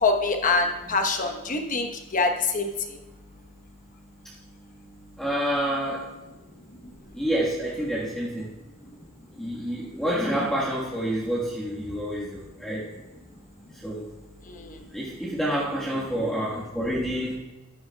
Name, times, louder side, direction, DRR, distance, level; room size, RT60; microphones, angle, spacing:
voice 1, 0.0-2.7 14.5-14.7, left 3 dB, 40° left, 4 dB, 1.1 m, -25 dB
voice 2, 5.2-6.1 7.1-8.5 9.4-12.8 13.8-14.1 14.9-17.4, equal, ahead, -7 dB, 1.5 m, -28 dB
13.5 x 11.5 x 2.3 m, 1.1 s
head